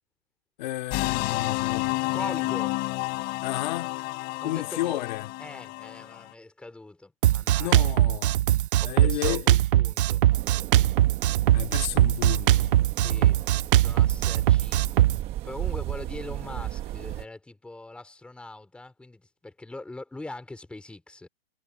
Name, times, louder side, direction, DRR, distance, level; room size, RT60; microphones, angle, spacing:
voice 1, 0.6-1.9 3.4-3.9 4.4-5.3 7.6-8.4 8.8-9.6 11.5-13.4, left 16 dB, 45° left, 2.3 m, -32 dB
sound 1, 0.9-6.2, left 25 dB, 30° left, 3.4 m, -30 dB
voice 2, 2.1-2.8 4.4-5.0 5.4-7.8 8.8-10.2 13.0-13.4 13.8-15.1 15.4-21.3, left 2 dB, 5° left, 4.0 m, -42 dB
Drum kit, 7.2-15.2, right 13 dB, 55° right, 0.4 m, -21 dB
sound 2, 10.3-17.3, right 14 dB, 20° right, 1.1 m, -35 dB
hypercardioid pair, 165°, 32 cm